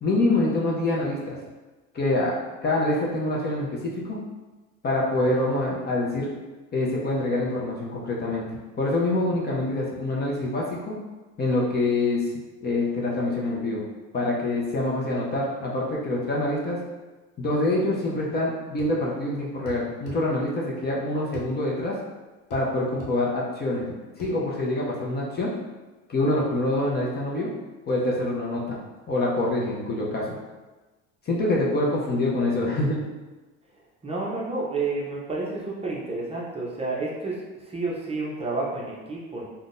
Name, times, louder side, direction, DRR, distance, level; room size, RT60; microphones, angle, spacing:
voice 1, 0.0-1.4 1.9-2.4 2.6-4.2 4.8-6.3 6.7-8.4 8.8-11.0 11.4-12.2 12.6-13.8 14.1-16.8 17.4-21.9 22.5-23.8 24.2-25.5 26.1-27.5 27.9-28.8 29.1-30.4 31.3-33.0, left 2 dB, 30° left, -4 dB, 0.6 m, -25 dB
sound 1, 18.8-19.0 19.7-20.2 21.3-21.5 22.5-22.7 23.0-23.2 24.2-24.4, equal, 70° left, 0.8 m, -40 dB
voice 2, 34.0-39.5, right 3 dB, 20° right, -5 dB, 0.6 m, -30 dB
3.6 x 2.2 x 2.5 m, 1.2 s
supercardioid pair, 110°, 34 cm